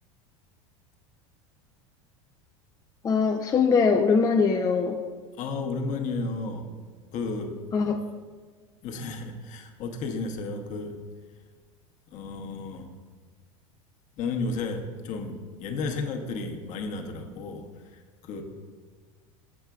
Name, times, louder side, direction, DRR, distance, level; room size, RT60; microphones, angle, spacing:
voice 1, 3.0-5.0 7.7-8.0, left 5 dB, 20° left, 3 dB, 0.4 m, -22 dB
voice 2, 5.4-6.7 7.1-7.6 8.8-11.0 12.1-12.9 14.2-17.7 17.9-18.4, left 3 dB, 45° left, 4 dB, 1.1 m, -33 dB
8.7 x 7.2 x 2.4 m, 1.5 s
hypercardioid pair, 100°, 17 cm